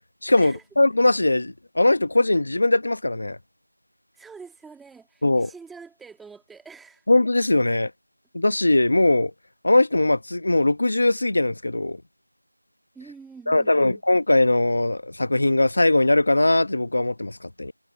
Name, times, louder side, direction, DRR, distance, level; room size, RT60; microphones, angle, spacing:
voice 1, 0.2-3.4 5.2-5.5 7.1-7.9 8.3-9.3 9.6-12.0 13.5-17.7, left 2 dB, 45° left, 1.0 m, -20 dB
voice 2, 4.1-7.0 12.9-14.0, right 5 dB, ahead, 1.9 m, -45 dB
figure-of-eight pair, 175°, 0 cm